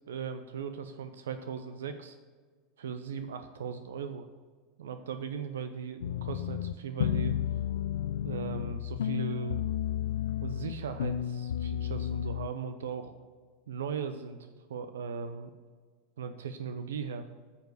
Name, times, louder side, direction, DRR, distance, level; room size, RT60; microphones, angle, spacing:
voice 1, 0.1-2.2 2.8-4.3 4.8-7.4 8.2-9.7 10.4-13.1 13.7-14.4 14.7-15.5 16.2-17.3, right 6 dB, 75° right, 10 dB, 0.6 m, -38 dB
sound 1, 6.0-12.5, left 11 dB, 75° left, 0.3 m, -32 dB
9.1 x 7.2 x 4.7 m, 1.5 s
hypercardioid pair, 85°, 0 cm